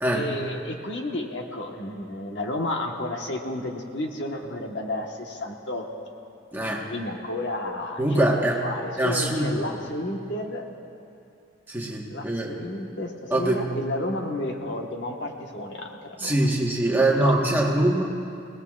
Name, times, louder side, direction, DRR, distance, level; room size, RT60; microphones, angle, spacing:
voice 1, 0.1-5.8 6.9-10.7 12.1-15.9 16.2-16.5 16.9-17.3, left 1 dB, 70° left, 1 dB, 1.3 m, -32 dB
voice 2, 6.5-6.8 8.0-8.6 9.0-9.6 11.7-12.6 13.3-13.6 16.2-18.0, right 1 dB, 10° right, -2 dB, 1.3 m, -23 dB
27.0 x 18.5 x 2.4 m, 2.6 s
head